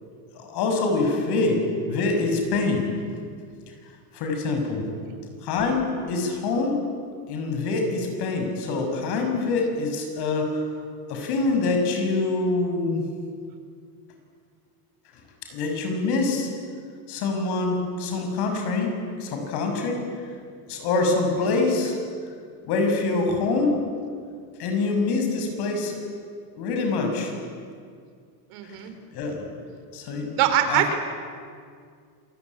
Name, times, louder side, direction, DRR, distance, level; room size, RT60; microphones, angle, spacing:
voice 1, 0.3-1.6 1.9-2.8 4.1-4.8 5.4-6.8 7.3-10.6 11.1-13.0 15.5-16.5 17.1-18.9 19.2-20.0 20.7-22.0 22.6-23.8 24.6-26.0 26.6-27.3 29.1-29.5 29.9-30.3 30.7-31.0, left 3 dB, 55° left, 4 dB, 6.7 m, -25 dB
voice 2, 28.5-28.9 30.4-30.9, right 10 dB, 75° right, 7 dB, 4.0 m, -23 dB
27.0 x 20.5 x 9.8 m, 2.2 s
cardioid pair, 155°, 46 cm